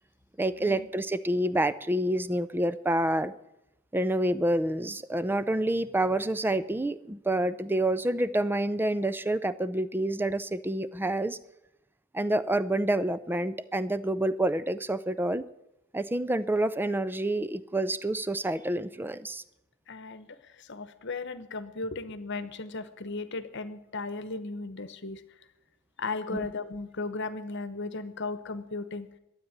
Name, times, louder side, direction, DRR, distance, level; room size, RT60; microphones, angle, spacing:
voice 1, 0.4-3.3 3.9-11.4 12.1-15.4 15.9-19.4 26.3-26.5, right 1 dB, 10° right, 15 dB, 0.5 m, -28 dB
voice 2, 19.9-25.2 26.0-29.1, left 3 dB, 60° left, 13 dB, 1.0 m, -36 dB
12.5 x 9.0 x 8.8 m, 0.87 s
head